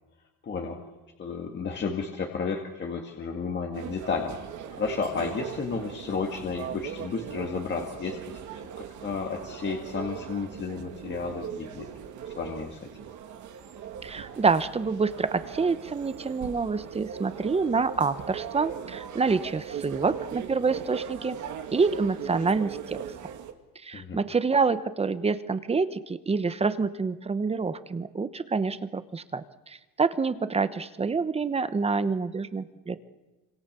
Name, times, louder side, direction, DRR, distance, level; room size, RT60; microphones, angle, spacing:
voice 1, 0.4-0.8 1.2-4.3 4.8-8.4 8.8-11.9 12.3-12.8 19.9-20.0 23.9-24.2, left 5 dB, 30° left, 2 dB, 2.1 m, -32 dB
sound 1, 3.7-23.5, right 8 dB, 55° right, 2.5 m, -39 dB
voice 2, 14.0-21.4 21.7-23.0 23.8-33.0, right 4 dB, 15° right, 13 dB, 1.0 m, -27 dB
27.0 x 26.5 x 6.9 m, 1.2 s
cardioid pair, 160°, 35 cm